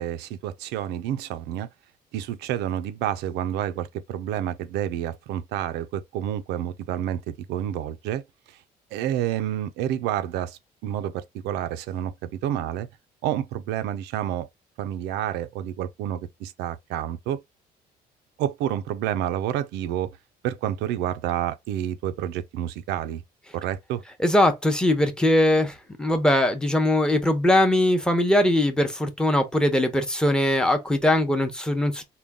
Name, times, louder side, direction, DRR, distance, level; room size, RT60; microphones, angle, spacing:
voice 1, 0.0-1.7 2.1-8.2 8.9-12.9 13.2-14.5 14.8-17.4 18.4-20.1 20.4-23.2 23.5-24.0, right 11 dB, 90° right, 0.5 m, -29 dB
voice 2, 24.2-32.0, left 1 dB, 5° left, 0.8 m, -21 dB
3.7 x 2.2 x 3.5 m
cardioid pair, 110°, 17 cm